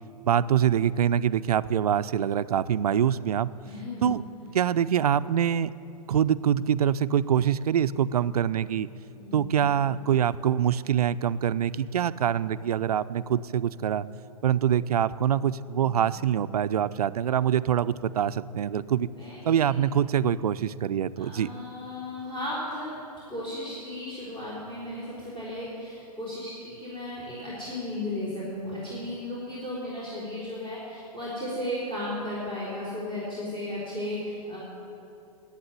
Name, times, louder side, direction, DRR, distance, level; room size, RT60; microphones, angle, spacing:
voice 1, 0.2-3.5 4.0-4.2 4.5-5.7 6.1-8.9 9.3-14.1 14.4-19.1 19.4-21.5, right 9 dB, 70° right, 15 dB, 0.5 m, -24 dB
voice 2, 3.6-4.2 9.2-9.7 15.7-16.2 19.0-19.8 21.2-22.9 23.3-34.6, left 1 dB, 25° left, -7 dB, 4.1 m, -35 dB
11.5 x 8.9 x 9.9 m, 2.7 s
hypercardioid pair, 115°, 20 cm